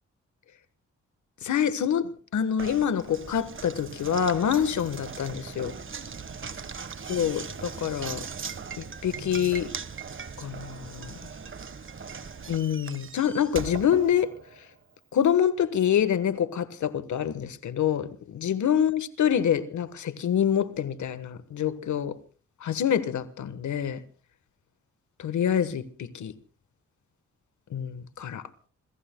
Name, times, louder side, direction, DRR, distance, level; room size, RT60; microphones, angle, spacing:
voice 1, 1.4-5.7 7.1-8.2 8.8-9.7 10.4-11.1 12.5-14.3 15.1-22.1 22.6-24.0 25.2-25.8 26.1-26.3 27.7-28.4, left 9 dB, 80° left, 1.3 m, -26 dB
Knock, 2.6-14.7, right 5 dB, 45° right, 1.4 m, -39 dB
28.0 x 21.0 x 2.2 m
cardioid pair, 65°, 29 cm